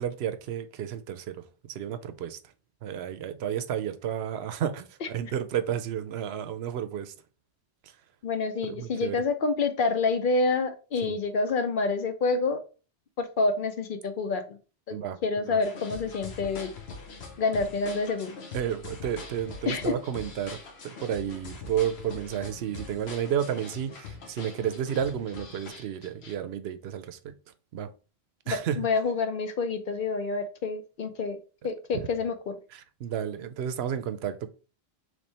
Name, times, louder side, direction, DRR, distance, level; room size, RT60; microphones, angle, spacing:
voice 1, 0.0-1.4 1.7-2.4 2.8-7.1 8.6-9.2 11.0-11.2 14.9-15.2 15.5-15.6 18.5-20.6 20.8-27.3 27.7-27.9 28.5-28.9 32.7-34.5, right 9 dB, 80° right, 0.8 m, -32 dB
voice 2, 8.2-12.6 13.2-14.4 14.9-15.0 15.2-16.7 17.4-18.4 19.7-19.9 28.5-31.4 31.6-32.5, left 3 dB, 60° left, 0.7 m, -27 dB
sound 1, 15.6-26.3, left 4 dB, 90° left, 1.1 m, -43 dB
3.3 x 3.2 x 4.1 m
omnidirectional pair, 1.1 m